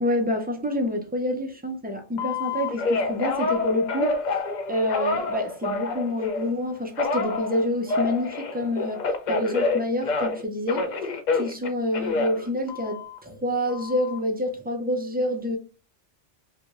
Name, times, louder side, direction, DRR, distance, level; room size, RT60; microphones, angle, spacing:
voice 1, 0.0-4.2 4.7-10.9 11.3-15.6, left 1 dB, 15° right, 0.3 m, -27 dB
Telephone, 2.2-6.5 7.0-10.4 10.7-13.2 13.7-14.2, left 3 dB, 55° left, 0.5 m, -28 dB
3.3 x 2.8 x 2.4 m
omnidirectional pair, 1.2 m